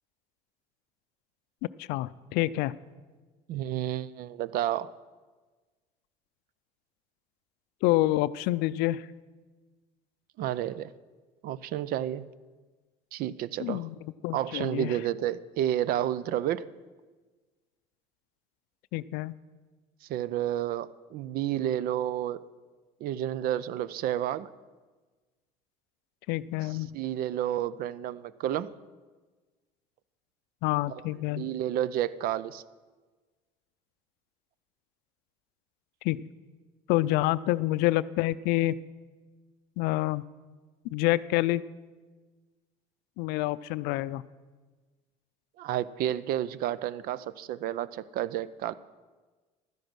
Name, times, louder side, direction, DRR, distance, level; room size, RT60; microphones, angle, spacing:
voice 1, 1.8-2.7 7.8-9.1 13.6-14.0 14.2-15.0 18.9-19.3 26.3-27.0 30.6-31.5 36.0-36.2 36.9-38.8 39.8-40.2 40.9-41.6 43.2-44.2, left 17 dB, 75° left, 17 dB, 0.4 m, -27 dB
voice 2, 3.5-4.9 10.4-10.9 11.4-12.3 13.1-13.9 14.3-16.7 20.0-22.4 23.0-24.5 26.9-28.7 30.9-31.0 31.3-32.6 45.6-48.7, right 12 dB, 65° right, 19 dB, 0.5 m, -31 dB
12.5 x 10.0 x 6.1 m, 1.3 s
supercardioid pair, 85°, 17 cm